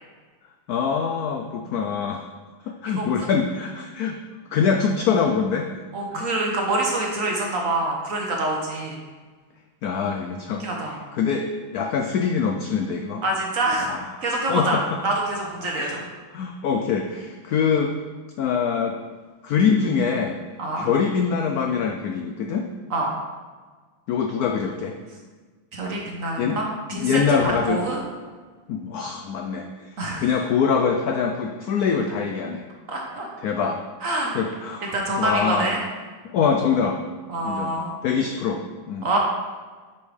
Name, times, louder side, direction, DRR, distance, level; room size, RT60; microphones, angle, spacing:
voice 1, 0.7-2.2 2.7-4.2 4.5-5.7 6.1-6.3 9.8-13.2 13.8-14.1 14.5-14.8 15.8-16.0 16.3-17.9 18.4-18.9 19.4-20.4 20.8-22.7 24.1-25.0 26.4-26.6 26.9-27.8 28.7-32.6 33.4-33.8 34.3-35.8 36.2-37.0 37.4-37.8 38.0-39.1, left 6 dB, 85° left, 3 dB, 0.8 m, -24 dB
voice 2, 3.0-3.3 5.9-9.0 10.5-11.0 13.2-13.9 14.2-16.0 20.6-20.9 22.9-23.1 25.7-28.0 30.0-30.2 32.9-33.3 34.0-34.3 34.9-35.8 37.3-38.0 39.0-39.2, right 2 dB, 50° right, -1 dB, 1.1 m, -26 dB
8.8 x 5.4 x 3.3 m, 1.4 s
omnidirectional pair, 2.2 m